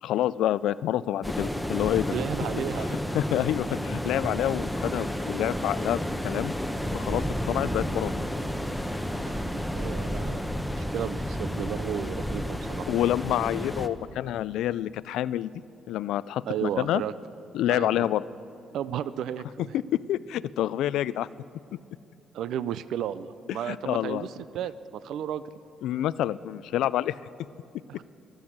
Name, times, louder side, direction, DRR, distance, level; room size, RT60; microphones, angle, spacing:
voice 1, 0.0-2.1 3.1-6.5 6.9-8.1 12.9-15.5 15.9-17.0 17.5-18.2 19.7-21.3 23.6-24.3 25.8-27.2, left 12 dB, 85° left, 18 dB, 0.3 m, -27 dB
sound 1, 1.2-13.9, equal, 5° left, 0.8 m, -31 dB
voice 2, 2.1-3.1 9.2-12.9 16.5-17.1 17.7-18.1 18.7-19.8 22.3-25.4 27.9-28.0, right 10 dB, 80° right, 15 dB, 0.4 m, -34 dB
23.0 x 8.0 x 7.3 m, 2.6 s
cardioid pair, 90°, 0 cm